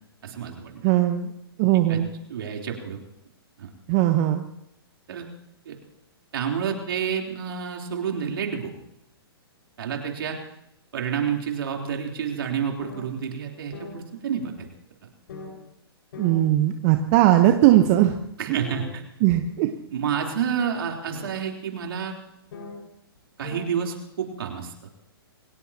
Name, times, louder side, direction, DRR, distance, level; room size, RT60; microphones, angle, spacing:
voice 1, 0.2-0.9 1.9-2.0 2.3-3.0 3.6-3.7 5.1-5.3 5.7-5.8 6.3-8.7 9.8-10.4 10.9-14.7 18.4-19.0 19.9-22.1 23.4-24.7, right 7 dB, 65° right, 1 dB, 3.7 m, -29 dB
voice 2, 0.8-1.3 1.6-2.1 3.9-4.5 16.2-18.1 18.5-18.6 19.2-19.7, right 13 dB, 35° right, 5 dB, 1.1 m, -19 dB
sound 1, 12.8-13.0 13.7-13.9 14.6-14.7 15.3-15.5 16.1-16.4 17.1-17.2 17.7-18.0 18.6-18.9 20.2-20.4 21.1-21.3 22.5-22.7 23.2-23.3 23.4-23.7, left 4 dB, 60° left, 5.7 m, -38 dB
28.0 x 17.0 x 3.0 m, 0.81 s
hypercardioid pair, 135°, 13 cm